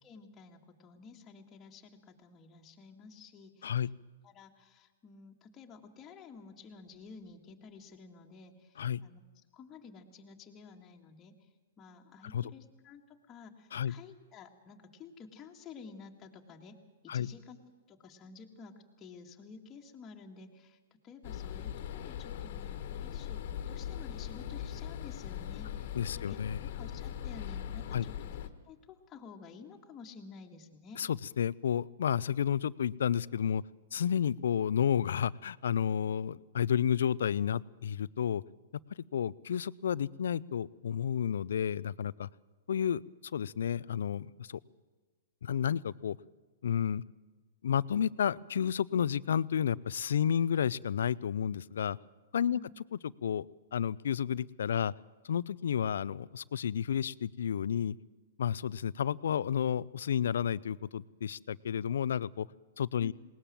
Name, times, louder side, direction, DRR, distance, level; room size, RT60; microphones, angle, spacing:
voice 1, 0.0-3.9 4.2-9.2 9.5-11.5 11.8-16.8 17.0-17.6 17.9-28.3 28.7-31.0 52.5-52.7 63.0-63.1, left 5 dB, 20° left, 0 dB, 2.0 m, -52 dB
sound 1, 21.2-28.5, left 10 dB, 60° left, 1.6 m, -40 dB
voice 2, 25.9-26.6 27.9-28.1 31.0-33.6 33.9-38.4 39.1-42.3 42.7-43.0 43.3-44.6 45.4-46.2 46.6-47.0 47.6-52.0 52.3-52.6 53.0-53.5 53.7-54.9 55.2-58.0 58.4-62.5 62.8-63.1, left 8 dB, 80° left, 20 dB, 0.5 m, -31 dB
20.5 x 19.0 x 7.5 m, 1.4 s
hypercardioid pair, 135°, 0 cm